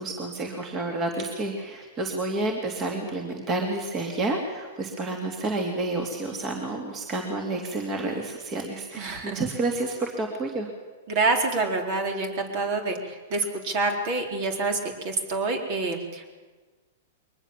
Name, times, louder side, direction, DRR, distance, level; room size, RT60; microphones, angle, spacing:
voice 1, 0.0-10.7, right 2 dB, 25° right, 2 dB, 2.8 m, -30 dB
voice 2, 9.0-9.4 11.1-14.8 15.0-16.3, right 3 dB, 50° right, 3 dB, 4.0 m, -27 dB
22.5 x 20.0 x 7.5 m, 1.3 s
hypercardioid pair, 135°, 0 cm